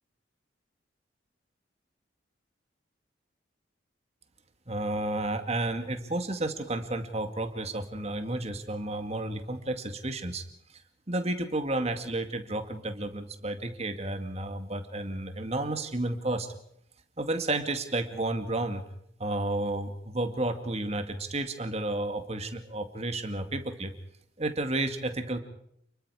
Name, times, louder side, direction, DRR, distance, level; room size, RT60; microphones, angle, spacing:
voice 1, 4.7-10.4 11.1-16.5 17.2-18.8 19.2-23.9 24.4-25.4, right 2 dB, 35° right, 7 dB, 2.2 m, -31 dB
29.5 x 22.0 x 5.0 m, 0.71 s
head